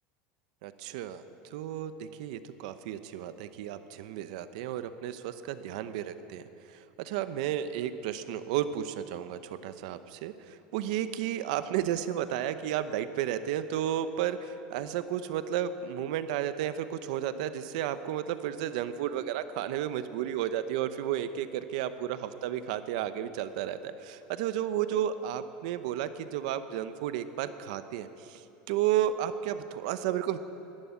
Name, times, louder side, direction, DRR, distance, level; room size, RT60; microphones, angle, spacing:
voice 1, 0.6-1.2 1.5-6.4 7.0-21.5 21.7-28.4 28.7-30.4, right 11 dB, 70° right, 11 dB, 0.8 m, -32 dB
12.5 x 11.5 x 9.5 m, 2.8 s
supercardioid pair, 165°, 4 cm